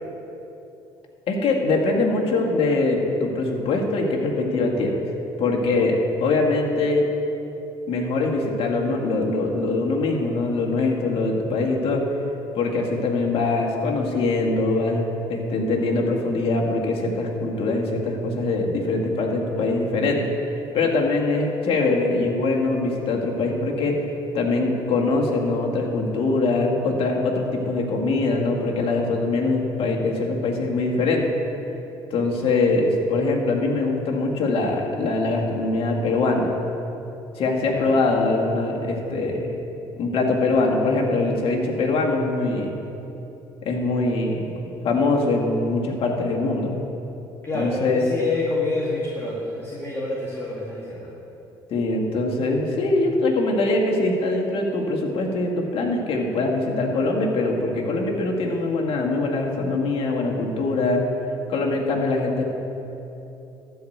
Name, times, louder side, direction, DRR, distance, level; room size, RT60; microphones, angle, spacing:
voice 1, 1.3-5.0 5.4-7.1 7.9-12.1 12.5-20.2 20.7-24.0 24.3-31.3 32.1-36.5 37.4-39.6 40.0-42.7 43.6-44.5 44.8-46.8 47.5-48.0 51.7-61.0 61.5-62.4, left 3 dB, 60° left, 0 dB, 1.9 m, -23 dB
voice 2, 47.4-51.1, left 3 dB, 25° left, -5 dB, 2.2 m, -28 dB
13.0 x 4.7 x 7.8 m, 3.0 s
hypercardioid pair, 65°, 11 cm